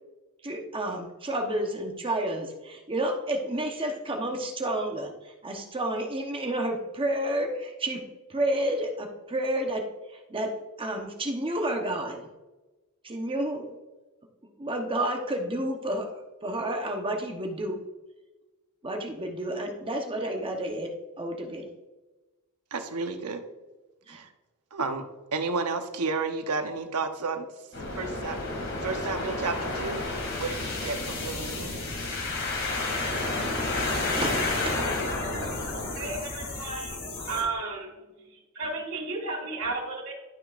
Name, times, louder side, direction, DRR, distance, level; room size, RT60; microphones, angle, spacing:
voice 1, 0.4-8.0 8.3-9.8 10.1-10.5 10.8-12.3 13.0-13.7 14.6-17.8 18.8-20.9 21.2-21.7 24.1-24.2 33.8-34.8, right 1 dB, 25° right, 2 dB, 1.0 m, -30 dB
voice 2, 22.7-23.4 24.1-24.3 24.7-25.1 25.3-27.5 28.0-30.1 30.4-31.8, right 4 dB, 85° right, 7 dB, 0.9 m, -32 dB
sound 1, 27.7-37.4, left 2 dB, 60° left, 2.4 m, -31 dB
voice 3, 35.9-37.0 37.3-37.9 38.3-40.1, right 3 dB, 65° right, -5 dB, 2.0 m, -33 dB
12.0 x 6.0 x 2.5 m, 1.1 s
head